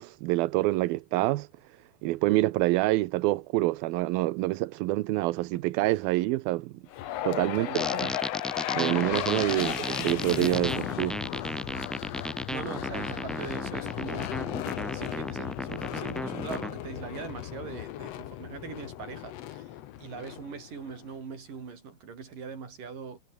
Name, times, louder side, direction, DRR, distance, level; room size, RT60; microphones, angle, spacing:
voice 1, 0.0-1.5 2.0-6.7 7.2-7.8 8.7-11.7, right 18 dB, 80° right, 2.6 m, -27 dB
sound 1, 6.9-21.1, left 13 dB, 75° left, 1.5 m, -35 dB
voice 2, 7.4-8.0 12.5-14.3 14.9-19.7 20.0-23.2, right 5 dB, 60° right, 6.3 m, -41 dB
sound 2, 7.7-16.7, equal, ahead, 0.5 m, -34 dB
omnidirectional pair, 4.4 m